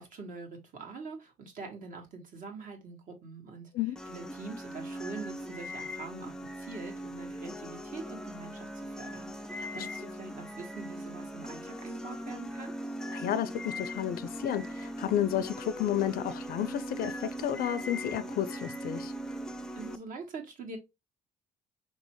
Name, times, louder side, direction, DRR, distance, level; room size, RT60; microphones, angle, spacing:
voice 1, 0.0-3.7 4.1-12.7 19.8-20.8, right 4 dB, 50° right, 1.7 m, -44 dB
sound 1, 4.0-20.0, equal, 5° left, 0.4 m, -40 dB
voice 2, 13.1-19.1, left 11 dB, 60° left, 0.5 m, -32 dB
4.4 x 3.2 x 3.0 m
cardioid pair, 110°, 17 cm